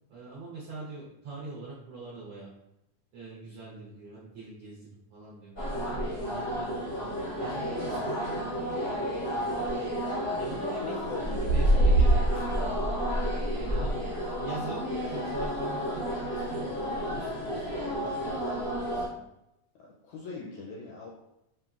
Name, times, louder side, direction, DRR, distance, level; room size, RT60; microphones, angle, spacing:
voice 1, 0.1-2.5 3.1-7.0 7.4-9.8 10.4-12.8 13.5-14.0 14.4-17.7 18.0-19.2, right 3 dB, 70° right, -7 dB, 1.4 m, -44 dB
sound 1, 5.6-19.1, right 1 dB, 60° left, 0.6 m, -29 dB
voice 2, 10.8-11.5 13.8-14.5 19.8-21.1, left 4 dB, 80° left, -2 dB, 1.7 m, -41 dB
5.4 x 2.7 x 2.4 m, 0.85 s
omnidirectional pair, 3.8 m